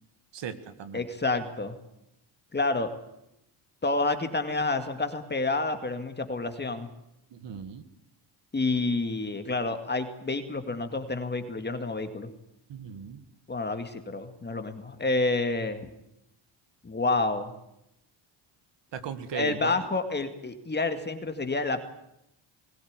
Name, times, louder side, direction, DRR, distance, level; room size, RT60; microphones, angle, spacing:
voice 1, 0.3-1.1 7.3-7.9 12.7-13.2 18.9-19.7, right 7 dB, 60° right, 11 dB, 1.9 m, -37 dB
voice 2, 0.9-1.7 2.5-2.9 3.8-6.9 8.5-12.3 13.5-15.9 16.8-17.5 19.3-21.8, left 3 dB, 20° left, 8 dB, 2.2 m, -29 dB
21.0 x 16.5 x 9.7 m, 0.82 s
cardioid pair, 115°, 49 cm